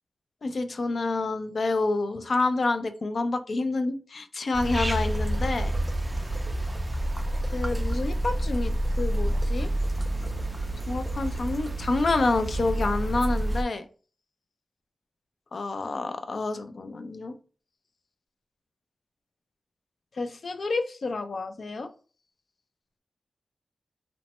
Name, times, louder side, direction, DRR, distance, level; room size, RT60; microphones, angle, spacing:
voice 1, 0.4-5.7 7.5-9.7 10.9-13.8 15.5-17.4 20.2-21.9, left 3 dB, 60° left, 9 dB, 0.4 m, -28 dB
sound 1, 4.5-13.6, right 1 dB, 20° right, 0.3 m, -28 dB
3.0 x 2.1 x 2.9 m, 0.38 s
wide cardioid pair, 115°, 0 cm